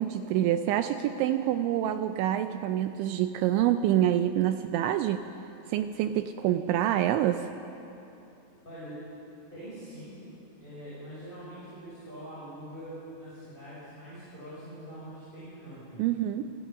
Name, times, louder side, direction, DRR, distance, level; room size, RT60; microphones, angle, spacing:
voice 1, 0.0-5.3 5.7-7.5 16.0-16.5, right 11 dB, 85° right, 8 dB, 2.7 m, -26 dB
voice 2, 8.6-9.1 9.5-10.2 10.6-16.0, right 1 dB, 10° left, -10 dB, 5.7 m, -44 dB
27.0 x 16.5 x 5.8 m, 2.9 s
omnidirectional pair, 5.7 m